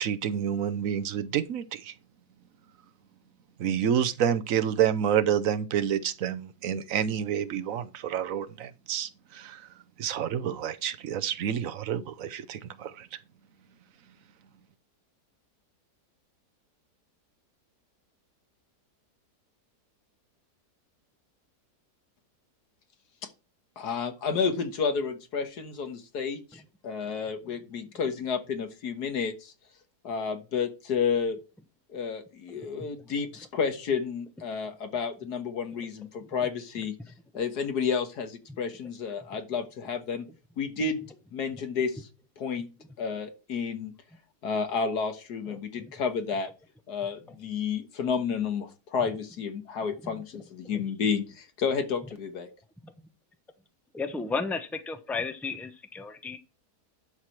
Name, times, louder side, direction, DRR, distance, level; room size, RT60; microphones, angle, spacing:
voice 1, 0.0-1.9 3.6-9.7 10.0-13.2, right 9 dB, 65° right, 1.0 m, -29 dB
voice 2, 23.8-29.5 30.0-31.4 31.9-36.9 37.3-40.3 40.6-41.0 41.3-42.1 42.4-42.7 43.0-43.9 44.4-46.5 46.9-52.5, left 6 dB, 75° left, 1.8 m, -31 dB
voice 3, 32.5-32.9 45.5-45.6 50.3-50.4 50.7-50.8 52.8-52.9 53.9-56.4, left 4 dB, ahead, 0.5 m, -34 dB
11.5 x 4.9 x 5.9 m
omnidirectional pair, 1.7 m